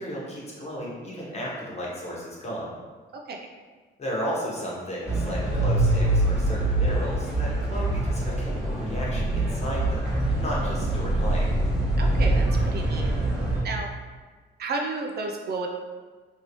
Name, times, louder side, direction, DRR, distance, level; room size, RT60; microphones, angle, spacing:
voice 1, 0.0-2.7 4.0-11.5, equal, 30° left, -5 dB, 1.1 m, -34 dB
voice 2, 3.1-3.5 12.0-13.1 13.6-13.9 14.6-15.7, right 3 dB, 55° right, 2 dB, 0.4 m, -32 dB
sound 1, 5.1-13.6, right 1 dB, 5° right, 1.0 m, -24 dB
3.0 x 2.7 x 3.1 m, 1.4 s
cardioid pair, 90°, 20 cm